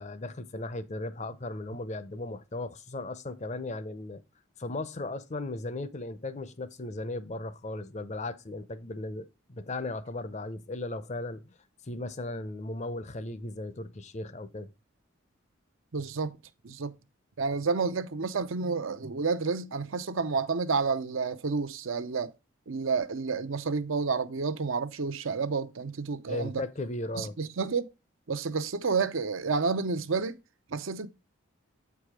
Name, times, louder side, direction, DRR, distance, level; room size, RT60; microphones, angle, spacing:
voice 1, 0.0-4.2 4.6-11.4 11.8-14.7 26.3-27.4, left 2 dB, 35° left, 0.6 m, -36 dB
voice 2, 15.9-16.3 16.6-16.9 17.4-22.3 22.7-26.5 27.2-27.9 28.3-30.4 30.7-31.1, right 4 dB, 70° right, 0.7 m, -30 dB
8.0 x 4.8 x 4.9 m
head